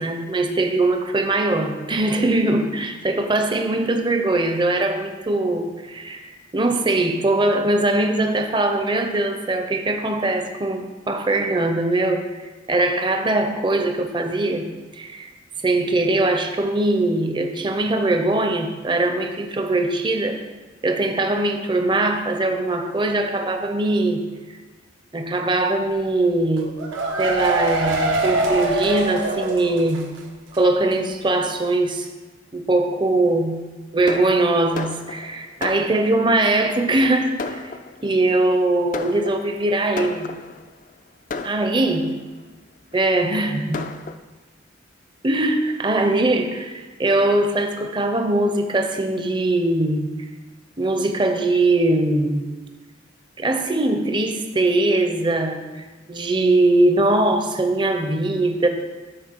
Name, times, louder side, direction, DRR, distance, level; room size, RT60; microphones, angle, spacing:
voice 1, 0.0-15.3 15.6-20.4 20.8-24.2 25.1-26.7 27.2-30.0 30.5-32.1 32.5-33.6 33.9-37.7 38.0-40.3 41.4-42.1 42.9-43.9 45.2-50.1 50.8-52.5 53.4-55.6 56.1-58.7, right 2 dB, 25° right, 5 dB, 0.6 m, -21 dB
sound 1, 26.6-30.2 30.5-30.6 30.9-31.0, right 2 dB, 90° right, 1.2 m, -23 dB
Fireworks, 34.1-36.4 37.0-37.1 37.4-38.3 38.9-40.7 41.3-42.2 42.9-43.0 43.3-43.4 43.7-44.1, left 4 dB, 40° left, 0.4 m, -33 dB
12.5 x 4.4 x 4.5 m, 1.3 s
head